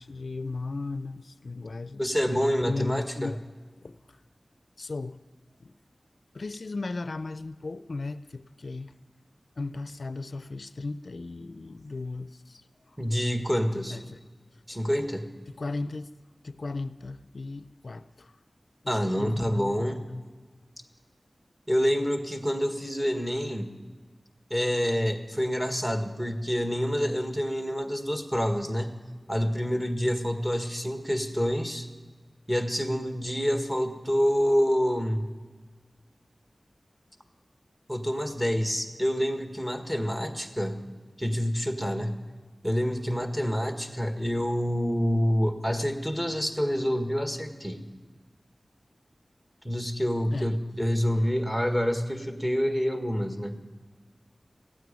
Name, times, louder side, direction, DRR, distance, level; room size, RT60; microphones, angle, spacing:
voice 1, 0.0-2.0 2.3-3.4 3.8-4.2 4.8-5.2 5.6-5.7 6.3-8.9 9.6-13.0 13.9-14.2 15.6-16.1 16.4-18.4 18.8-20.2 50.3-50.5, left 3 dB, 75° left, 13 dB, 0.4 m, -36 dB
voice 2, 2.0-3.3 13.0-14.0 14.7-15.3 18.9-20.0 21.7-23.7 24.5-29.0 29.3-31.9 32.5-35.3 37.9-40.8 41.2-42.1 42.6-47.8 49.6-53.6, equal, 10° right, 6 dB, 1.7 m, -27 dB
16.0 x 9.3 x 8.9 m, 1.4 s
wide cardioid pair, 50°, 0 cm